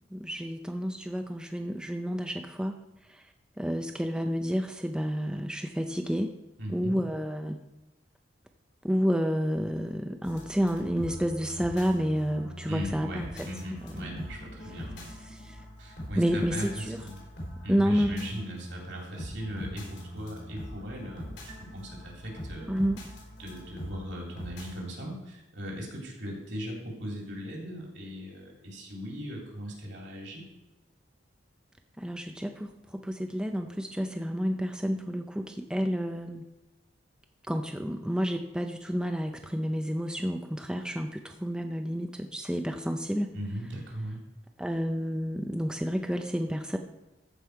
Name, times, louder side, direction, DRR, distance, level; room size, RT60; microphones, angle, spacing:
voice 1, 0.1-2.8 3.1-3.2 3.6-6.3 6.7-7.6 8.8-13.3 13.8-14.2 15.2-15.6 16.2-17.0 17.7-18.4 22.7-23.0 32.0-36.4 37.5-43.3 44.6-46.8, equal, 5° right, 4 dB, 0.5 m, -30 dB
voice 2, 6.6-7.0 12.6-15.2 15.8-17.2 17.6-22.7 23.4-30.4 43.3-44.3, equal, 65° right, -1 dB, 2.9 m, -39 dB
sound 1, 10.2-25.0, equal, 65° left, 3.7 m, -42 dB
14.0 x 5.4 x 4.6 m, 0.99 s
head